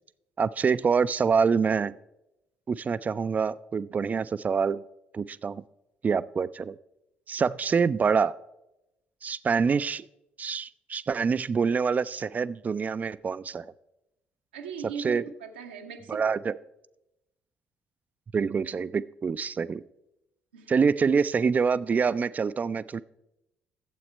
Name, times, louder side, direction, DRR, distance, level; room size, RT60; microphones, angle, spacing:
voice 1, 0.4-1.9 2.7-4.8 5.1-5.6 6.0-6.8 7.3-8.3 9.2-10.1 10.4-13.6 15.0-15.2 16.1-16.5 18.3-19.8 20.7-23.0, right 5 dB, 30° right, 17 dB, 0.3 m, -26 dB
voice 2, 14.5-16.3 20.5-20.7, right 6 dB, 75° right, 3 dB, 0.7 m, -39 dB
12.0 x 7.8 x 4.4 m, 0.90 s
figure-of-eight pair, 45°, 5 cm